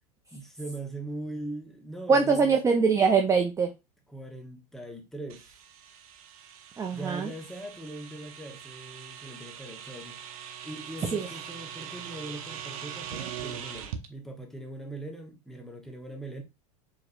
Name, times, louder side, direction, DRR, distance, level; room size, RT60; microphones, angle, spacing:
voice 1, 0.3-2.6 4.1-5.5 6.9-16.4, right 2 dB, ahead, 0.9 m, -41 dB
voice 2, 2.1-3.7 6.8-7.3 11.1-11.3, right 5 dB, 15° right, 0.5 m, -23 dB
sound 1, 5.3-14.1, right 9 dB, 65° right, 0.8 m, -42 dB
5.0 x 3.0 x 2.5 m
hypercardioid pair, 105°, 20 cm